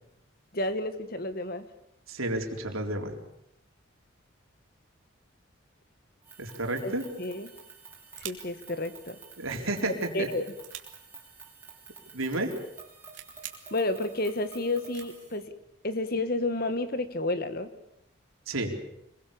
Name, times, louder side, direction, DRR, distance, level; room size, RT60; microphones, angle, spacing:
voice 1, 0.5-1.7 6.8-7.5 8.2-9.2 10.1-10.4 13.7-15.5 15.8-17.7, left 2 dB, 45° left, 11 dB, 1.7 m, -31 dB
voice 2, 2.1-3.2 6.4-7.0 9.4-10.3 12.1-12.5 18.5-18.8, right 2 dB, 90° right, 3 dB, 4.0 m, -31 dB
sound 1, 6.2-15.4, right 5 dB, 10° right, 5.5 m, -50 dB
sound 2, 6.8-7.1 7.4-7.5 7.7-8.7 9.5-9.8 10.2-10.8 11.7-11.8 12.1-12.4 12.7-12.8 13.1-13.5 14.2-14.3 14.9-15.1, right 11 dB, 65° right, 3.0 m, -44 dB
26.0 x 22.5 x 7.1 m, 0.79 s
head